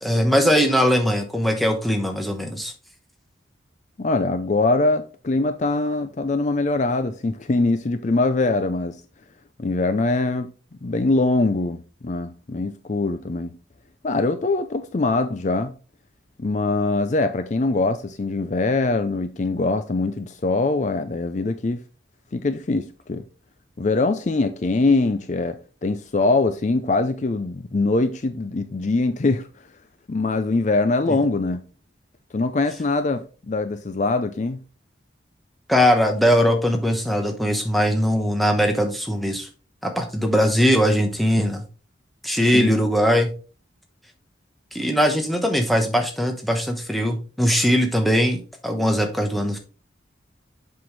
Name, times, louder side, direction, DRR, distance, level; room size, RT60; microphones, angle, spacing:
voice 1, 0.0-2.7 31.1-31.2 35.7-39.5 39.8-41.6 42.2-43.3 44.7-49.6, equal, ahead, 1.0 m, -20 dB
voice 2, 4.0-9.0 9.6-10.5 10.8-13.5 14.0-15.7 16.4-21.8 22.3-23.2 23.8-29.5 30.1-31.6 32.3-34.6 42.5-42.8, left 3 dB, 40° left, 0.5 m, -23 dB
7.6 x 5.7 x 3.2 m
head